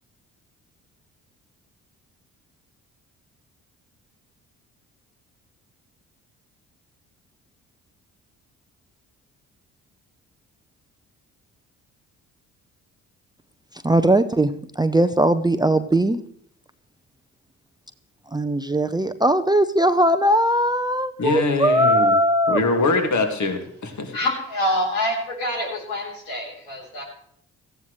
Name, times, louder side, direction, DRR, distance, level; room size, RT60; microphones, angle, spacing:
voice 1, 13.8-16.2 18.3-22.6, right 1 dB, 10° right, 10 dB, 0.7 m, -19 dB
voice 2, 21.2-22.1 22.5-24.2, left 3 dB, 45° left, 5 dB, 2.2 m, -23 dB
voice 3, 24.1-27.0, left 1 dB, 80° left, -1 dB, 3.9 m, -26 dB
17.5 x 14.5 x 3.2 m, 0.65 s
hypercardioid pair, 45°, 40 cm